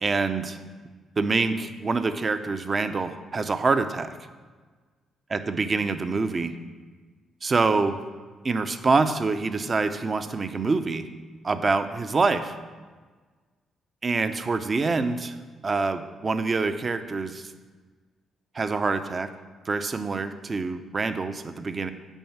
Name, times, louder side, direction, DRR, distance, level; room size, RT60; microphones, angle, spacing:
voice 1, 0.0-0.6 1.2-4.1 5.3-6.5 7.4-8.0 8.4-11.1 11.4-12.6 14.0-15.3 15.6-17.5 18.5-19.3 19.7-21.9, right 4 dB, 35° right, 10 dB, 0.7 m, -25 dB
9.1 x 5.3 x 7.2 m, 1.4 s
cardioid pair, 90°, 0 cm